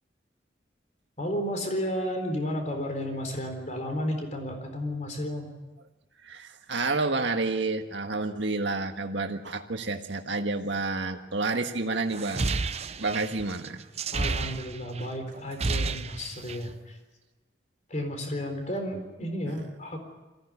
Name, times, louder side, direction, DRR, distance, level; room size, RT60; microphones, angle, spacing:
voice 1, 1.2-5.5 14.1-16.9 17.9-20.0, equal, 40° left, 4 dB, 4.1 m, -32 dB
voice 2, 6.2-12.6 13.0-13.8 19.5-19.6, right 3 dB, 75° right, 5 dB, 1.6 m, -30 dB
sound 1, 12.1-15.0 15.4-16.7, right 3 dB, 35° right, 0.7 m, -31 dB
23.0 x 16.0 x 9.8 m, 1.1 s
head